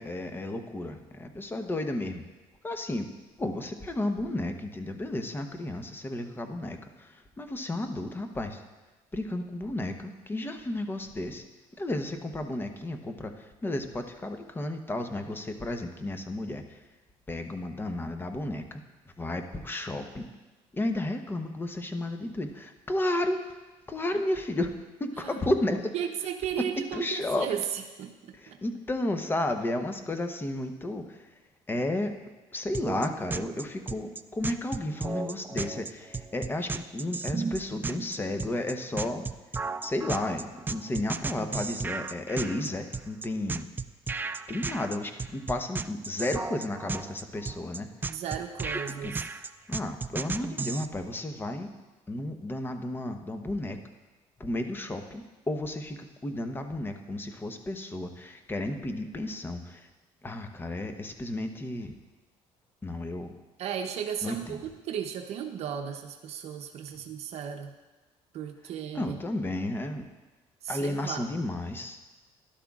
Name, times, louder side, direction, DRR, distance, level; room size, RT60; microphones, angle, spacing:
voice 1, 0.0-2.2 2.6-3.1 3.4-8.6 9.1-11.4 11.8-16.8 17.3-18.8 19.2-20.2 20.7-23.5 23.9-24.7 25.0-25.9 26.6-26.7 26.9-27.5 28.4-31.3 31.7-32.1 32.5-39.2 39.8-43.7 44.5-47.9 49.0-49.1 49.7-51.7 52.1-53.8 54.4-59.9 60.2-61.9 62.8-63.3 64.2-64.6 68.9-70.0 70.7-72.0, left 1 dB, 20° left, 6 dB, 0.9 m, -33 dB
voice 2, 25.9-28.6 48.1-49.2 63.6-67.8 68.3-69.2 70.6-71.3, right 8 dB, 65° right, 5 dB, 0.7 m, -35 dB
Minor-chord-synth-loop, 32.7-50.9, right 4 dB, 15° right, 0.3 m, -34 dB
12.5 x 11.5 x 2.4 m, 1.2 s
cardioid pair, 105°, 12 cm